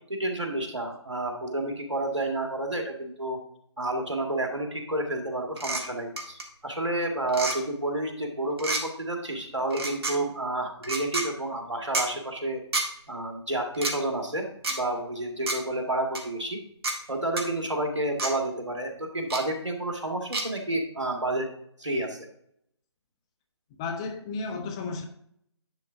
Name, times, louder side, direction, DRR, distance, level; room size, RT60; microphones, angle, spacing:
voice 1, 0.1-3.4 3.8-12.6 13.1-16.6 17.1-21.5 21.8-22.3, right 1 dB, 85° right, 3 dB, 1.9 m, -30 dB
sound 1, 5.6-5.8 6.2-6.4 7.3-7.6 8.6-8.8 9.7-10.1 10.8-11.3 11.9-12.1 12.7-12.9 13.7-13.9 14.6-14.8 15.5-15.6 16.1-16.2 16.8-17.0 17.4-17.5 18.2-18.3 19.3-19.4 20.3-20.4, right 2 dB, 60° right, 1.7 m, -28 dB
voice 2, 23.8-25.0, left 4 dB, 10° left, 5 dB, 0.3 m, -33 dB
10.5 x 3.6 x 4.8 m, 0.68 s
figure-of-eight pair, 145°, 15 cm